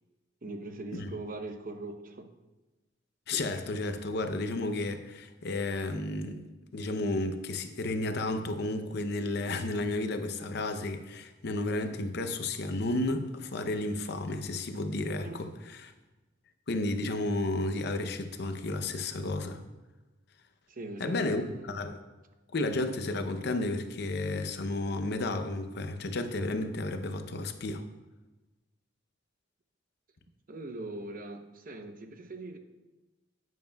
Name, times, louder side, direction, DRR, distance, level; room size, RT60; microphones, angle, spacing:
voice 1, 0.4-2.3 15.2-15.4 20.7-21.9 30.5-32.6, right 2 dB, 45° right, 6 dB, 0.7 m, -41 dB
voice 2, 3.3-6.4 6.7-15.9 16.7-19.6 21.0-21.4 21.7-22.0 22.5-27.8, left 2 dB, 60° left, 8 dB, 0.6 m, -32 dB
10.5 x 9.3 x 2.3 m, 1.1 s
head